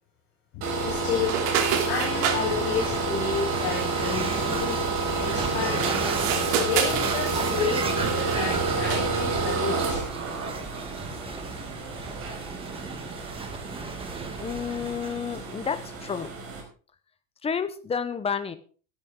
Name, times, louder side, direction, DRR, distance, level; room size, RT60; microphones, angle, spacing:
voice 1, 0.5-6.1 6.5-10.0, left 6 dB, 55° left, -2 dB, 6.9 m, -31 dB
sound 1, 0.6-16.6, right 3 dB, 35° right, 5.3 m, -30 dB
sound 2, 1.2-2.4 5.7-8.5 8.8-9.2, right 8 dB, 65° right, 3.1 m, -29 dB
sound 3, 1.7-16.1, right 4 dB, 15° right, 1.5 m, -35 dB
voice 2, 14.4-16.3 17.4-18.6, left 6 dB, 15° left, 12 dB, 0.9 m, -30 dB
13.5 x 13.0 x 3.8 m, 0.39 s
supercardioid pair, 155°, 39 cm